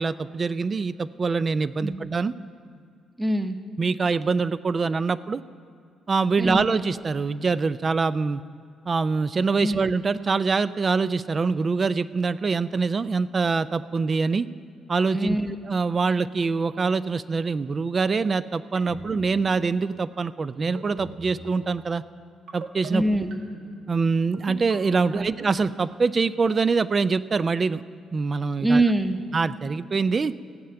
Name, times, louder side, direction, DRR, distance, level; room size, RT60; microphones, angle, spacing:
voice 1, 0.0-2.3 3.8-5.4 6.1-8.4 8.9-14.5 14.9-15.4 15.6-22.0 22.5-23.0 23.9-27.8 28.1-28.8 29.3-30.3, right 4 dB, 35° right, 15 dB, 0.3 m, -24 dB
voice 2, 3.2-3.6 6.4-6.6 9.6-9.8 15.1-15.5 22.9-23.4 25.1-25.3 28.6-29.2, right 1 dB, 10° right, 8 dB, 0.8 m, -23 dB
sound 1, 18.8-19.2 19.6-19.9 20.6-21.1 21.4-21.7 22.5-22.9 23.3-23.7 24.3-24.7 25.2-25.5, right 5 dB, 80° right, 1.7 m, -39 dB
16.0 x 5.7 x 8.8 m, 2.3 s
cardioid pair, 95°, 0 cm